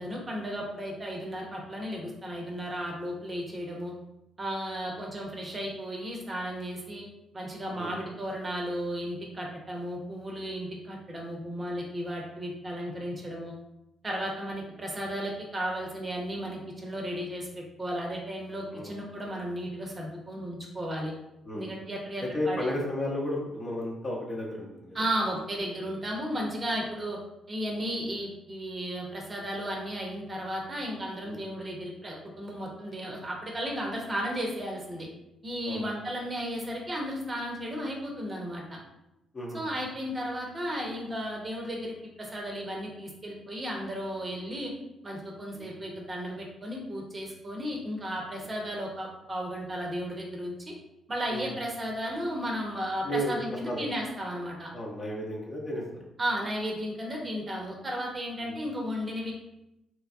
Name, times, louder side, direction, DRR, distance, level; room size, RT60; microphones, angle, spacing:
voice 1, 0.0-3.9 4.4-7.0 7.3-13.5 14.0-17.5 17.8-21.1 21.5-22.7 24.9-27.2 27.5-35.1 35.4-38.8 39.5-44.7 45.0-50.7 51.1-54.7 56.2-59.3, equal, 35° right, -1 dB, 0.7 m, -34 dB
voice 2, 18.7-19.3 21.4-21.7 22.3-25.0 31.2-31.4 35.6-35.8 39.3-39.6 45.5-45.8 51.3-51.5 53.0-53.9 54.7-56.0 58.4-58.6, left 1 dB, 35° left, -3 dB, 0.9 m, -34 dB
3.1 x 2.2 x 2.5 m, 0.89 s
figure-of-eight pair, 40°, 0 cm